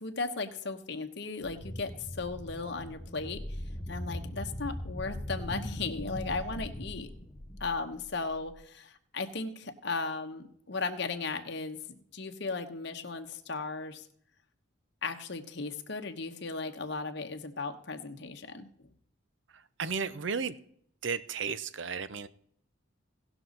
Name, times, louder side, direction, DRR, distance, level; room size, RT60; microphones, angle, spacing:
voice 1, 0.0-3.4 3.9-7.1 7.6-11.8 12.1-14.1 15.0-18.7, left 3 dB, 55° left, 6 dB, 1.0 m, -36 dB
sound 1, 1.4-8.5, left 1 dB, 25° left, 0.7 m, -40 dB
voice 2, 19.8-20.5 21.0-22.3, right 5 dB, 65° right, 15 dB, 0.6 m, -33 dB
17.5 x 6.1 x 3.9 m, 0.65 s
head